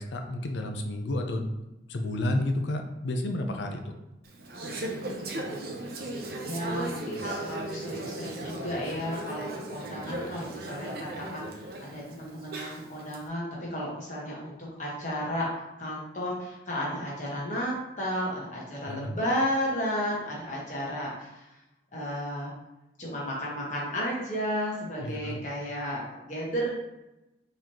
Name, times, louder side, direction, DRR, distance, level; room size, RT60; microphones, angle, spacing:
voice 1, 0.0-1.5 1.9-3.9 18.9-19.1 25.0-25.4, left 1 dB, 75° left, 5 dB, 0.5 m, -31 dB
Conversation / Chatter, 4.2-13.2, right 1 dB, 55° right, 0.5 m, -37 dB
voice 2, 4.8-5.9 6.4-21.5 21.9-22.5 23.0-26.7, equal, 40° left, -5 dB, 1.2 m, -33 dB
4.0 x 3.2 x 2.9 m, 0.94 s
head